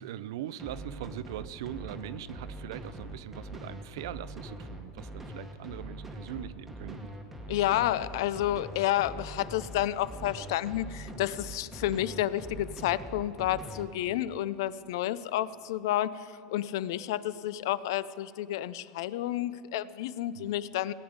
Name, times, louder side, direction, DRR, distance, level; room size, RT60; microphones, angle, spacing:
voice 1, 0.0-7.1 20.3-20.5, right 11 dB, 85° right, 17 dB, 0.4 m, -41 dB
sound 1, 0.6-13.8, right 1 dB, 10° right, 1.0 m, -42 dB
voice 2, 7.5-20.9, left 13 dB, 80° left, 17 dB, 0.4 m, -30 dB
17.5 x 8.9 x 5.1 m, 2.6 s
supercardioid pair, 160°, 2 cm